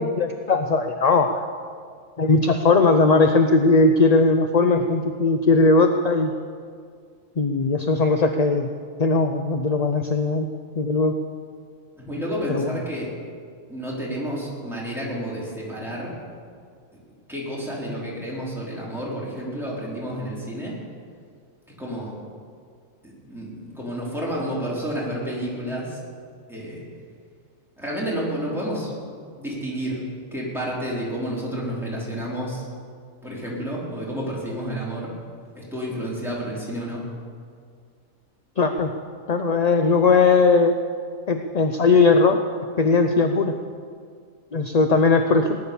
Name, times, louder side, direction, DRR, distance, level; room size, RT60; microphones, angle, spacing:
voice 1, 0.0-1.5 2.2-6.3 7.4-8.7 9.0-10.5 10.8-11.1 12.5-12.7 38.6-38.9 39.3-40.8 41.3-42.4 42.8-43.5 44.5-45.6, left 3 dB, 40° left, 6 dB, 0.6 m, -19 dB
voice 2, 12.0-13.1 13.7-16.2 17.3-20.8 21.8-22.1 23.0-26.0 26.5-26.9 27.8-28.9 29.4-30.0 30.3-32.7 33.2-35.1 35.5-37.0, equal, ahead, -6 dB, 4.5 m, -30 dB
18.5 x 11.0 x 7.1 m, 2.1 s
omnidirectional pair, 1.4 m